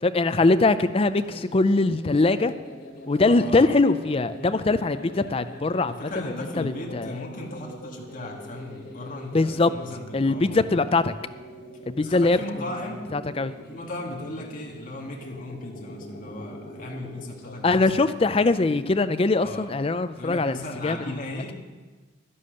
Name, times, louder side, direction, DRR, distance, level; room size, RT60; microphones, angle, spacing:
voice 1, 0.0-2.5 3.1-7.1 9.3-9.7 10.1-11.1 11.9-12.4 13.1-13.5 17.6-21.2, left 3 dB, 30° left, 12 dB, 0.5 m, -22 dB
sound 1, 1.0-17.6, equal, 70° left, 2.9 m, -43 dB
voice 2, 3.3-3.7 5.9-10.8 12.0-13.1 13.7-18.4 19.4-19.7 20.1-21.5, left 1 dB, 45° left, -1 dB, 1.7 m, -37 dB
11.5 x 11.0 x 6.5 m, 1.3 s
head